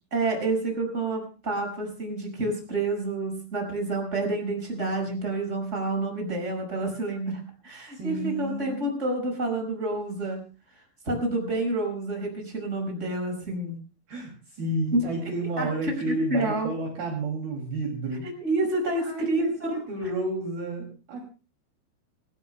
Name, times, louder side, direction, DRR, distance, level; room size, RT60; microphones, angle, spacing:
voice 1, 0.1-10.4 11.0-13.8 14.9-15.1 15.6-16.7 18.2-19.8, right 2 dB, 15° right, 2 dB, 5.8 m, -29 dB
voice 2, 7.9-9.0 14.1-18.3 19.0-21.2, right 2 dB, 55° right, 0 dB, 4.2 m, -31 dB
26.5 x 18.0 x 2.2 m, 0.34 s
omnidirectional pair, 5.5 m